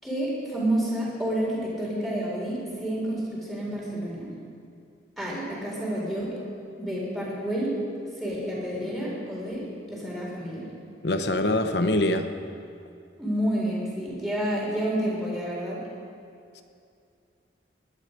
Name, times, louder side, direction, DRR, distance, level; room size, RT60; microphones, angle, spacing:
voice 1, 0.0-4.3 5.2-6.3 6.8-7.8 8.2-10.7 13.2-15.8, right 1 dB, ahead, -6 dB, 4.0 m, -29 dB
voice 2, 11.0-12.3 16.6-16.7, left 1 dB, 65° left, 8 dB, 0.9 m, -24 dB
20.0 x 10.5 x 5.1 m, 2.5 s
head